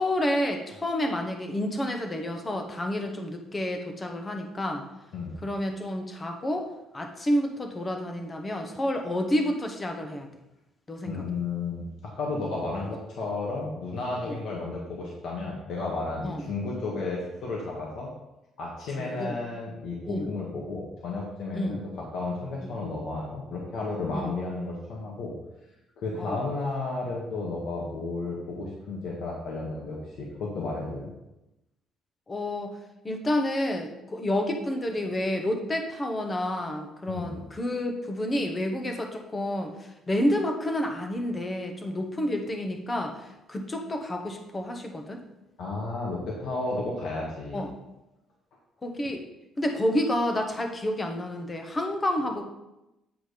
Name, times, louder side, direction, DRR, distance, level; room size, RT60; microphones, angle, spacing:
voice 1, 0.0-4.8 5.4-10.3 10.9-11.2 12.8-12.9 14.2-14.4 16.2-16.4 19.0-19.4 20.0-20.3 21.5-21.8 22.6-22.7 24.1-24.3 26.2-26.4 32.3-32.7 33.0-45.2 47.5-47.7 48.8-49.2 49.6-52.4, left 1 dB, 20° left, 4 dB, 1.1 m, -29 dB
voice 2, 11.0-18.1 18.6-25.3 26.0-31.1 37.1-37.4 45.6-47.6, left 3 dB, 65° left, -3 dB, 1.7 m, -33 dB
9.0 x 5.0 x 5.1 m, 0.93 s
cardioid pair, 145°, 0 cm